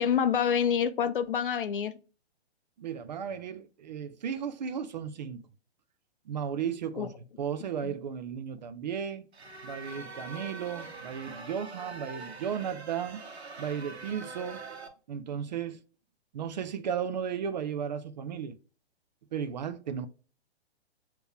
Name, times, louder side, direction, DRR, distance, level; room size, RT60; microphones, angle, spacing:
voice 1, 0.0-2.0 7.0-7.1 7.8-7.9, left 8 dB, 55° left, 0.5 m, -27 dB
voice 2, 2.8-5.4 6.3-7.1 7.4-9.2 9.6-13.2 13.6-14.6 15.1-15.8 16.3-18.6 19.3-20.1, right 7 dB, 40° right, 0.5 m, -35 dB
sound 1, 9.3-14.9, right 3 dB, 75° right, 1.2 m, -44 dB
7.7 x 2.9 x 2.2 m
figure-of-eight pair, 115°, 33 cm